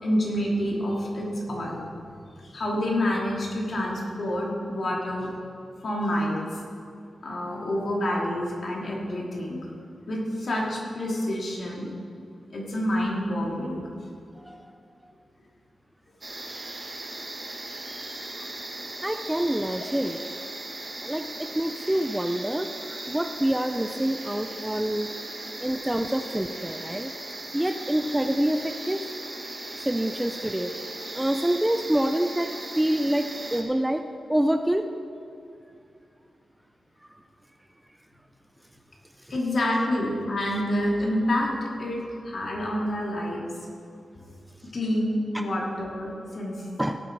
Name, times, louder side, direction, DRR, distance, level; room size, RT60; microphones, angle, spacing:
voice 1, 0.0-1.8 2.4-5.3 5.8-6.5 7.2-9.6 10.1-11.9 12.5-13.8 17.9-18.2 39.3-41.5 41.8-43.4 44.7-46.6, left 1 dB, 50° left, -2 dB, 2.7 m, -28 dB
sound 1, 16.2-33.6, right 2 dB, 30° right, 1.7 m, -38 dB
voice 2, 19.0-20.2 21.0-25.1 25.6-27.1 27.5-29.1 29.8-30.7 31.1-32.5 32.8-34.0 34.3-34.9 45.3-45.5 46.8-47.0, right 1 dB, 5° right, 7 dB, 0.5 m, -26 dB
17.5 x 8.4 x 4.7 m, 2.5 s
wide cardioid pair, 130°, 0 cm